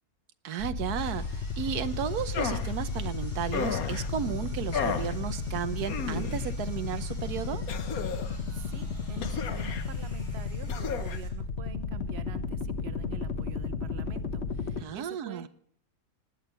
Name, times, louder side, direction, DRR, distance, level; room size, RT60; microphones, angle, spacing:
voice 1, 0.4-7.6 14.8-15.5, right 9 dB, 80° right, 12 dB, 1.3 m, -34 dB
sound 1, 0.6-14.8, left 4 dB, 45° left, 1.3 m, -34 dB
Sawing, 1.0-11.3, left 1 dB, 85° left, 6.9 m, -53 dB
sound 2, 2.3-2.7 3.5-4.1 4.7-5.1 5.8-6.5 7.7-8.4 9.2-9.9 10.7-11.2, left 6 dB, 65° left, 1.6 m, -33 dB
voice 2, 8.5-15.5, right 6 dB, 45° right, 12 dB, 1.2 m, -46 dB
19.0 x 9.4 x 6.7 m, 0.65 s
omnidirectional pair, 1.6 m